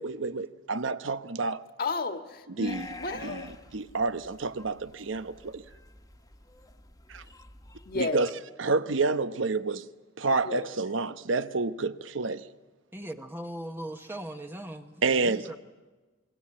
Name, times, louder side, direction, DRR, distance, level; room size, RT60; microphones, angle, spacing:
voice 1, 0.0-1.6 2.6-2.9 3.7-5.6 7.1-7.2 7.9-8.3 8.6-9.8 10.2-12.5 15.0-15.6, right 3 dB, 70° right, 0.9 m, -29 dB
voice 2, 1.8-3.6 7.9-8.3 10.4-10.7, left 3 dB, 50° left, 1.7 m, -33 dB
sound 1, 2.6-8.0, left 3 dB, 20° left, 1.4 m, -48 dB
voice 3, 12.9-15.6, right 1 dB, 10° right, 1.0 m, -39 dB
27.5 x 21.5 x 8.7 m
head